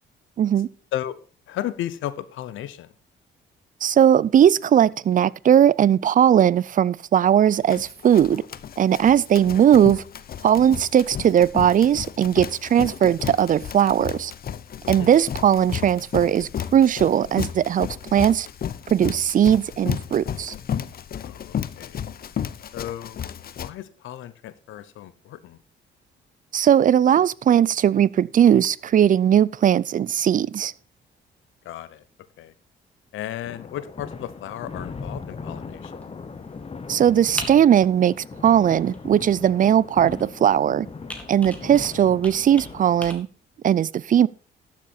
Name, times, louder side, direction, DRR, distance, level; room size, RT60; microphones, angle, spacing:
voice 1, 0.4-0.7 3.8-8.4 8.8-10.0 10.4-14.3 14.9-18.5 18.9-20.5 26.5-30.7 36.9-38.1 38.4-40.9 41.3-43.3 43.6-44.3, right 9 dB, 45° right, 0.4 m, -18 dB
voice 2, 1.5-2.9 9.6-9.7 15.0-15.1 21.2-22.0 22.7-23.2 23.6-25.6 31.6-32.0 32.4-32.5 33.1-36.1, left 12 dB, 80° left, 0.9 m, -34 dB
Run, 7.5-23.7, left 9 dB, 50° left, 0.7 m, -33 dB
sound 1, 33.4-43.1, left 4 dB, 30° left, 1.0 m, -39 dB
Computer keyboard, 35.8-43.1, left 1 dB, 5° left, 2.2 m, -41 dB
12.0 x 7.4 x 4.3 m
cardioid pair, 90°, 20 cm